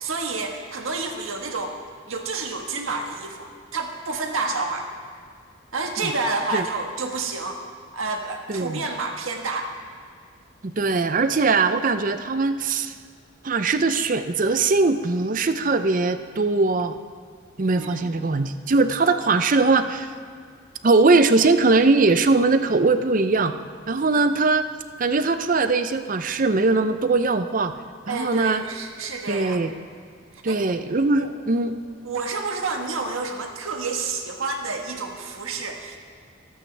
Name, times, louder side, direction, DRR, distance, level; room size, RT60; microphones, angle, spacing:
voice 1, 0.0-1.8 2.1-4.9 5.7-7.6 7.9-9.7 17.7-18.1 28.1-29.6 30.5-30.6 31.1-31.3 32.0-36.0, right 3 dB, 90° right, 2 dB, 1.5 m, -29 dB
voice 2, 8.5-8.8 10.6-12.9 13.4-16.9 17.6-20.1 20.8-23.5 23.9-24.7 25.0-27.7 28.1-28.6 29.3-29.7 30.4-31.8, right 3 dB, 40° right, 10 dB, 0.6 m, -21 dB
25.0 x 8.7 x 3.4 m, 2.2 s
head